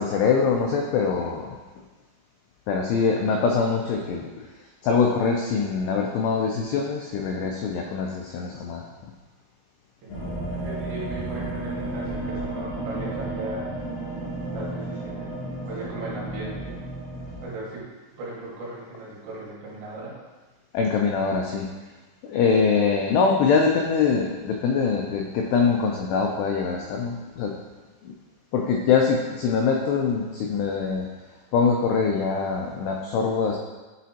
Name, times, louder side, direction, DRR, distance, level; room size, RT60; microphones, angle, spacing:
voice 1, 0.0-1.6 2.7-4.5 4.8-8.9 20.7-21.7 22.2-27.5 28.0-28.1 28.5-31.1 31.5-33.6, left 5 dB, 90° left, 1 dB, 2.3 m, -23 dB
voice 2, 10.0-13.7 14.5-15.3 15.7-16.8 17.4-17.8 18.1-20.1, right 2 dB, 70° right, -6 dB, 3.7 m, -37 dB
sound 1, 10.1-17.4, right 1 dB, 60° left, 4.0 m, -32 dB
10.0 x 4.2 x 2.8 m, 1.2 s
omnidirectional pair, 5.4 m